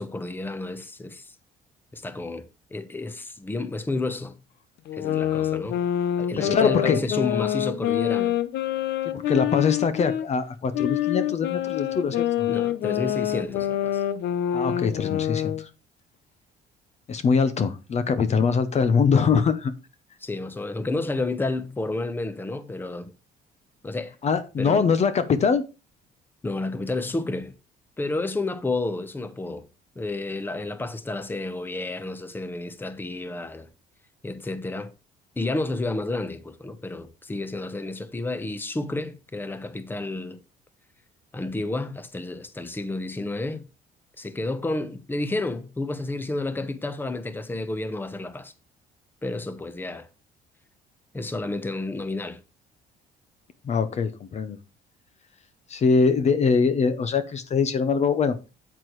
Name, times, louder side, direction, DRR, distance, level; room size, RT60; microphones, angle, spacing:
voice 1, 0.0-1.3 1.9-4.4 4.9-5.8 6.2-8.4 12.5-14.0 20.2-23.1 23.8-24.1 24.6-24.9 26.4-27.5 28.0-29.6 30.0-33.7 34.2-34.9 35.4-40.4 41.3-43.6 44.2-48.5 49.2-50.1 51.1-52.4, left 2 dB, 10° left, 0.9 m, -31 dB
sound 1, 4.9-10.3 10.7-15.6, left 11 dB, 80° left, 0.8 m, -26 dB
voice 2, 6.4-7.0 9.1-12.5 14.5-15.7 17.1-19.7 24.2-25.6 53.6-54.6 55.7-58.4, left 5 dB, 40° left, 0.8 m, -23 dB
8.7 x 8.1 x 3.2 m
cardioid pair, 110°, 17 cm